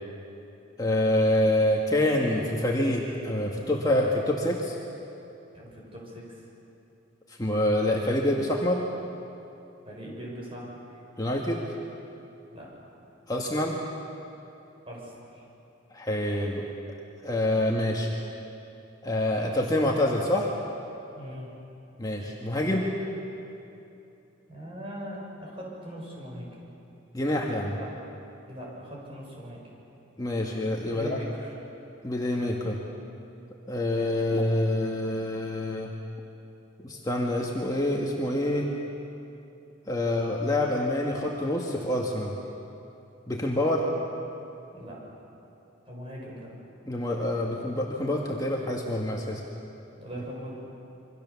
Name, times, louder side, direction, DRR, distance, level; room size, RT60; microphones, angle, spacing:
voice 1, 0.8-4.8 7.3-8.8 11.2-11.7 13.3-13.8 15.9-16.7 17.2-18.1 19.0-20.5 22.0-22.9 27.1-27.8 30.2-31.2 32.0-32.8 33.7-35.9 36.8-38.7 39.9-42.4 43.3-43.9 46.9-49.4 50.1-50.2, left 1 dB, 20° left, -2 dB, 1.8 m, -26 dB
voice 2, 5.5-6.4 9.8-11.0 12.5-12.9 14.9-15.4 21.1-21.5 24.5-26.5 27.3-27.7 28.5-29.6 30.9-31.5 44.7-45.2 45.9-46.5 50.0-50.5, equal, 30° right, -3 dB, 6.8 m, -41 dB
27.5 x 24.5 x 7.2 m, 2.8 s
head